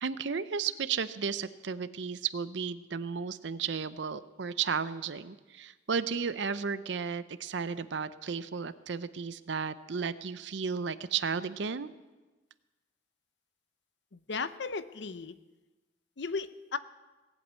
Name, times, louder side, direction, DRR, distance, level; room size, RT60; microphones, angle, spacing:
voice 1, 0.0-11.9, right 6 dB, 70° right, 14 dB, 0.6 m, -34 dB
voice 2, 14.1-15.3 16.2-16.8, left 4 dB, 70° left, 13 dB, 0.7 m, -36 dB
18.5 x 8.2 x 8.2 m, 1.2 s
head